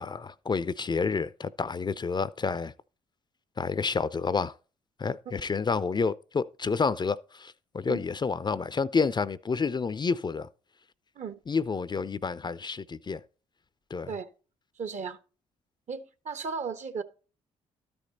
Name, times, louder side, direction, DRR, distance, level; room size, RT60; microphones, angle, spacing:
voice 1, 0.0-2.7 3.6-4.6 5.0-10.5 11.5-13.2 13.9-14.1, left 5 dB, 30° left, 0.5 m, -29 dB
voice 2, 14.8-15.2 15.9-17.0, right 5 dB, 55° right, 1.2 m, -35 dB
12.5 x 5.2 x 4.1 m
supercardioid pair, 55°, 15 cm